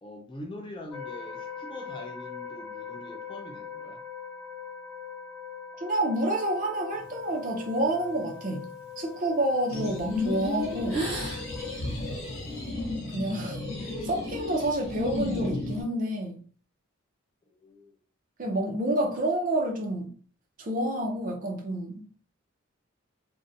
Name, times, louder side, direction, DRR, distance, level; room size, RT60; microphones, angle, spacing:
voice 1, 0.0-4.0 12.3-12.7 17.4-18.0, left 1 dB, 25° left, 0.3 m, -44 dB
sound 1, 0.9-11.8, left 7 dB, 10° right, 1.3 m, -42 dB
voice 2, 5.8-8.7 9.0-11.1 13.0-16.4 18.4-20.1 20.6-22.1, right 1 dB, 40° right, 0.5 m, -29 dB
sound 2, 6.9-9.6 10.2-10.4 10.7-12.7, right 2 dB, 70° right, 1.1 m, -39 dB
sound 3, 9.7-15.8, left 2 dB, 75° left, 0.8 m, -33 dB
2.5 x 2.1 x 2.6 m
head